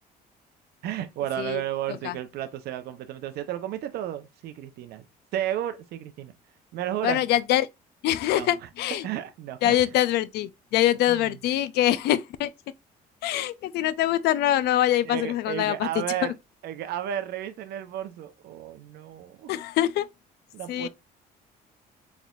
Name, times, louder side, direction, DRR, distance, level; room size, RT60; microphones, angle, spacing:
voice 1, 0.8-5.0 5.3-6.3 6.7-7.2 8.3-8.7 9.0-9.8 11.1-11.4 15.0-16.3 16.6-19.5 20.5-20.9, right 11 dB, 70° right, 0.7 m, -33 dB
voice 2, 7.0-7.7 8.0-9.0 9.6-12.5 13.2-15.9 19.5-20.1 20.7-20.9, left 13 dB, 75° left, 0.5 m, -24 dB
4.3 x 3.4 x 2.4 m
cardioid pair, 110°, 17 cm